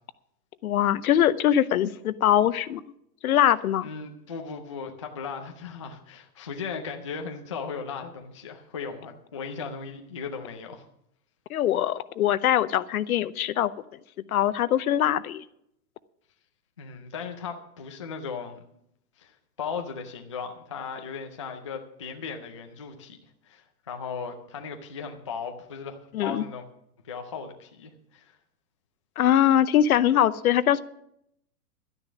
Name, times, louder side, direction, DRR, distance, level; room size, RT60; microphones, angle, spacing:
voice 1, 0.6-2.8 3.2-3.9 11.5-13.7 14.3-15.4 26.1-26.4 29.2-30.8, left 11 dB, 60° left, 16 dB, 0.8 m, -22 dB
voice 2, 3.8-10.9 16.8-18.6 19.2-23.2 23.4-26.7 27.0-28.4, left 5 dB, 20° left, 4 dB, 0.4 m, -37 dB
12.0 x 10.0 x 6.1 m, 0.75 s
hypercardioid pair, 160°, 48 cm